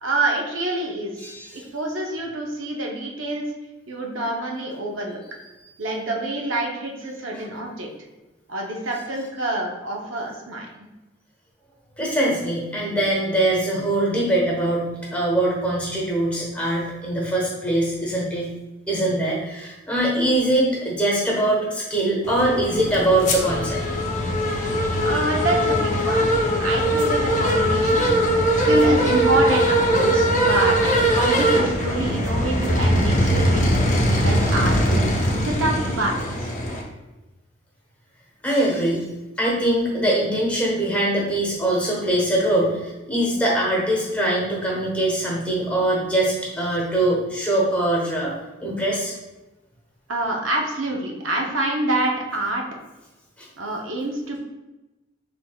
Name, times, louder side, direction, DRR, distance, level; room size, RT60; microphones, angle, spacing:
voice 1, 0.0-3.4 3.9-5.2 5.8-7.9 8.5-10.7 25.0-26.3 26.6-28.1 28.5-35.0 35.4-36.5 50.1-52.6 53.6-54.4, right 2 dB, 80° right, 0 dB, 0.7 m, -26 dB
voice 2, 12.0-18.5 18.9-23.8 38.4-39.0 39.4-48.3 48.6-49.1 53.4-53.5, right 1 dB, 5° left, -4 dB, 1.0 m, -22 dB
sound 1, 22.2-36.8, equal, 35° left, 0.7 m, -21 dB
5.8 x 3.4 x 2.3 m, 1.1 s
head